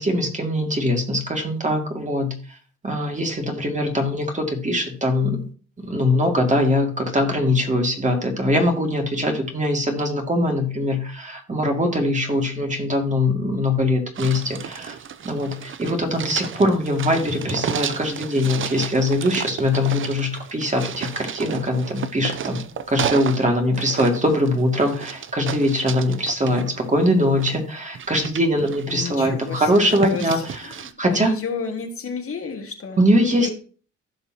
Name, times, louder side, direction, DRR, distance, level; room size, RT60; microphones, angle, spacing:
voice 1, 0.0-2.3 2.8-5.4 5.8-15.0 15.2-30.4 30.7-31.3 33.0-33.5, left 1 dB, 25° right, 2 dB, 2.4 m, -22 dB
sound 1, 14.1-23.4 23.7-27.6 27.9-29.1 29.5-30.9, right 8 dB, 40° right, 0.7 m, -32 dB
voice 2, 28.9-33.0 33.4-33.5, left 5 dB, 50° left, 3 dB, 2.1 m, -32 dB
15.5 x 5.5 x 3.0 m, 0.39 s
cardioid pair, 90°, 30 cm